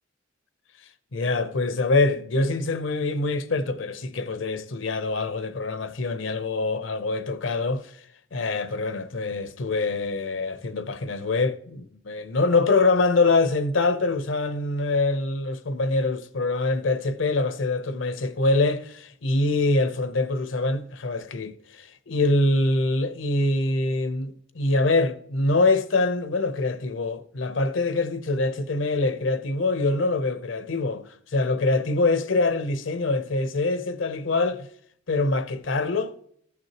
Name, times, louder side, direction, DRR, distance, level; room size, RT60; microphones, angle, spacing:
voice 1, 1.1-7.9 8.3-34.7 35.1-36.3, left 3 dB, 75° left, 0.8 m, -24 dB
15.0 x 6.0 x 3.0 m
head